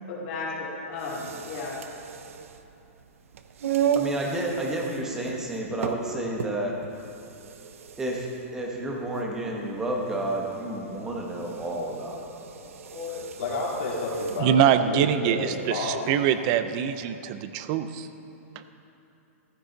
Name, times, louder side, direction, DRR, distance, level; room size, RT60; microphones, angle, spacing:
voice 1, 0.1-1.8 12.6-13.2, left 4 dB, 30° left, -4 dB, 2.4 m, -35 dB
sound 1, 0.9-14.5, right 8 dB, 70° right, 0.7 m, -35 dB
voice 2, 3.9-6.8 8.0-8.3 8.5-12.2, right 1 dB, 5° right, -1 dB, 1.0 m, -30 dB
voice 3, 13.4-14.5 14.8-16.1, left 3 dB, 60° left, -5 dB, 3.4 m, -31 dB
voice 4, 14.4-18.1, right 9 dB, 25° right, 11 dB, 0.4 m, -24 dB
14.5 x 12.5 x 3.9 m, 2.9 s
hypercardioid pair, 180°, 8 cm